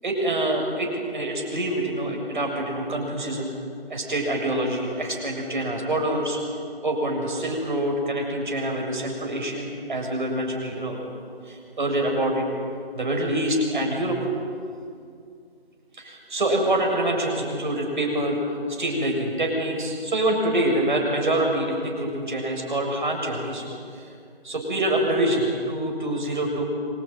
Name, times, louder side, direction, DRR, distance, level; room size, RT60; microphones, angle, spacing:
voice 1, 0.0-3.5 3.9-6.4 6.8-11.1 11.5-12.5 12.9-14.2 15.9-18.4 18.7-23.6 24.0-24.1 24.4-26.6, right 1 dB, 50° right, 1 dB, 7.4 m, -26 dB
27.0 x 20.5 x 9.3 m, 2.3 s
figure-of-eight pair, 170°, 31 cm